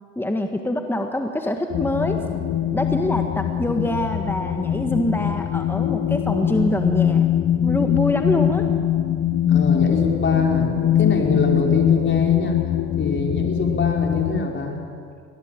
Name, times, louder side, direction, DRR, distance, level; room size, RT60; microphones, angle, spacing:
voice 1, 0.2-2.2 2.7-7.3 7.6-8.6, left 1 dB, 5° left, 4 dB, 1.8 m, -25 dB
sound 1, 1.7-14.4, left 10 dB, 55° left, 1.7 m, -22 dB
voice 2, 9.5-12.6 13.0-14.8, left 3 dB, 35° left, 1 dB, 4.9 m, -24 dB
24.0 x 17.0 x 9.2 m, 2.2 s
supercardioid pair, 85°, 32 cm